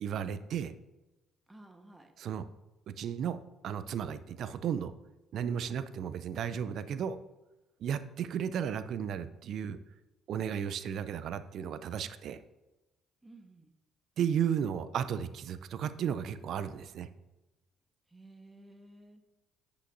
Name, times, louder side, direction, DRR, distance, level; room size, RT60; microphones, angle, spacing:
voice 1, 0.0-0.7 2.2-2.5 2.9-4.9 5.3-7.2 7.8-9.8 10.3-12.4 14.2-17.1, right 8 dB, 65° right, 13 dB, 0.4 m, -34 dB
voice 2, 1.5-2.1 13.2-13.7 18.1-19.3, right 1 dB, 15° right, 5 dB, 1.2 m, -54 dB
8.4 x 8.2 x 2.6 m, 1.0 s
hypercardioid pair, 55°, 0 cm